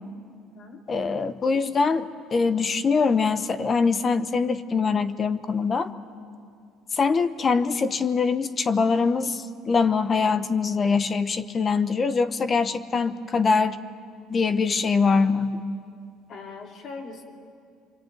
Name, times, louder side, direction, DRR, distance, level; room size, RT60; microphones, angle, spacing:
voice 1, 0.9-5.9 6.9-13.8 14.3-15.6, left 4 dB, 25° left, 12 dB, 0.9 m, -23 dB
voice 2, 16.3-17.2, left 4 dB, 40° left, 3 dB, 2.5 m, -40 dB
26.5 x 23.5 x 9.2 m, 2.3 s
cardioid pair, 170°, 0 cm